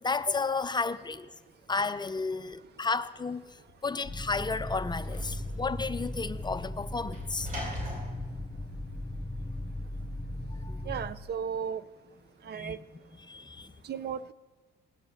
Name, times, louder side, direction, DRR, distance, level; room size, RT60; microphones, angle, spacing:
voice 1, 0.0-1.3 1.7-3.4 3.8-7.5 10.5-10.9 12.5-12.8 13.2-13.7, left 4 dB, 20° left, 0.6 m, -32 dB
Sliding door / Slam, 3.8-9.6, equal, 40° right, 4.4 m, -44 dB
sound 1, 4.0-11.1, left 1 dB, ahead, 1.2 m, -37 dB
voice 2, 10.9-11.8 12.4-12.8 13.8-14.3, right 7 dB, 55° right, 0.6 m, -35 dB
19.0 x 6.9 x 7.1 m
cardioid pair, 90°, 20 cm